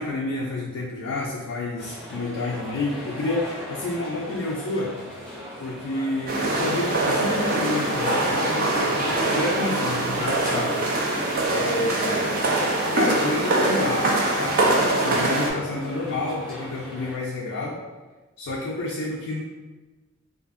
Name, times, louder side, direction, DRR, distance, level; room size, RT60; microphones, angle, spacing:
voice 1, 0.0-4.9 5.6-10.7 11.5-12.5 12.9-17.8 18.4-19.4, left 2 dB, 75° left, -4 dB, 0.4 m, -29 dB
sound 1, 1.8-17.2, equal, 5° left, 0.6 m, -39 dB
sound 2, 6.3-15.5, right 2 dB, 45° right, 0.4 m, -23 dB
2.7 x 2.4 x 2.4 m, 1.2 s
head